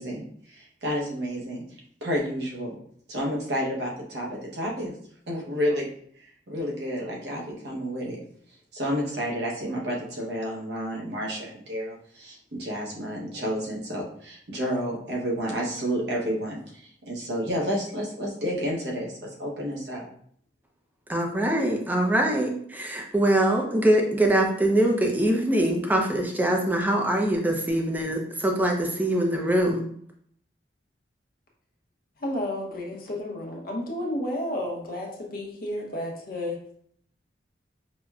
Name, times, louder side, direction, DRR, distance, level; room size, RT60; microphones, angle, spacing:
voice 1, 0.0-1.6 2.0-2.7 3.1-4.9 5.3-5.8 6.2-8.2 8.7-20.1, equal, 65° right, -2 dB, 0.9 m, -30 dB
voice 2, 21.1-29.8, right 1 dB, 10° right, 1 dB, 0.5 m, -23 dB
voice 3, 32.2-36.6, left 1 dB, 55° left, -1 dB, 0.8 m, -31 dB
5.0 x 2.1 x 2.3 m, 0.63 s
head